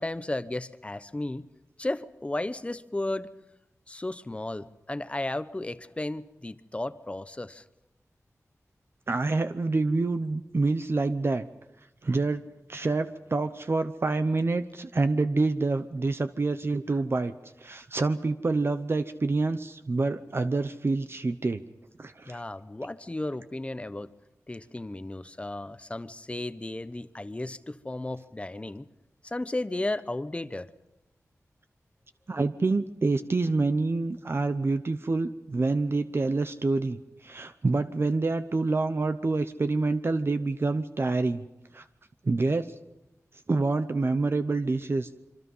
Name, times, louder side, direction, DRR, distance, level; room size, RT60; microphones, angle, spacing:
voice 1, 0.0-1.5 1.8-3.3 3.9-7.6 22.3-24.1 24.5-28.9 29.2-30.7, left 2 dB, 20° left, 13 dB, 0.9 m, -34 dB
voice 2, 9.1-11.5 12.0-12.4 12.7-17.3 17.6-21.6 22.0-22.4 32.3-41.4 41.7-41.8 42.2-42.7 43.5-45.2, right 3 dB, 45° right, 9 dB, 0.8 m, -27 dB
27.0 x 24.5 x 5.6 m, 0.92 s
wide cardioid pair, 100°, 6 cm